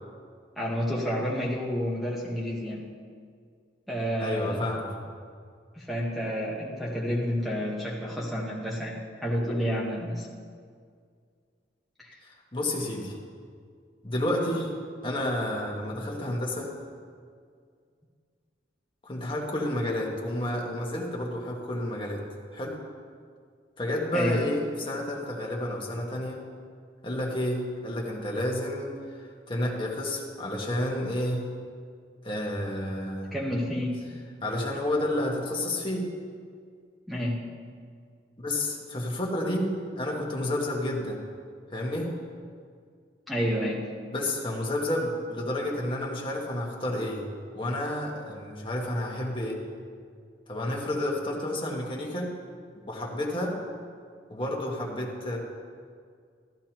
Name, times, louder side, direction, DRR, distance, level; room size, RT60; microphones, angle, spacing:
voice 1, 0.6-2.8 3.9-4.7 5.7-10.3 12.0-12.2 24.1-24.4 33.3-34.0 37.1-37.4 43.3-43.8, equal, ahead, -5 dB, 1.1 m, -30 dB
voice 2, 4.2-5.0 12.2-13.2 14.0-14.7 15.0-16.7 19.0-22.2 22.5-22.8 23.8-26.4 27.0-31.4 32.2-33.3 34.4-36.1 38.4-41.2 41.7-42.2 44.1-47.3 47.5-49.6 50.5-52.3 52.8-53.6 54.3-55.4, left 1 dB, 30° left, -2 dB, 1.5 m, -30 dB
13.5 x 13.5 x 3.0 m, 2.1 s
head